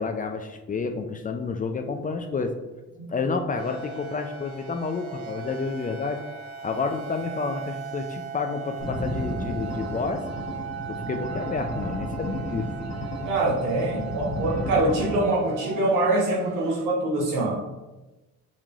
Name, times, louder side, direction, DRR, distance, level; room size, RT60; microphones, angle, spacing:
voice 1, 0.0-2.6 3.1-6.2 6.6-10.2 10.9-12.7, left 4 dB, 30° left, 6 dB, 0.4 m, -30 dB
sound 1, 3.6-16.9, right 7 dB, 50° right, 0.5 m, -38 dB
sound 2, 8.8-15.2, left 1 dB, 60° left, 1.3 m, -33 dB
voice 2, 13.2-17.5, right 2 dB, 90° right, -3 dB, 1.2 m, -24 dB
5.6 x 3.1 x 2.4 m, 1.1 s
cardioid pair, 90°, 30 cm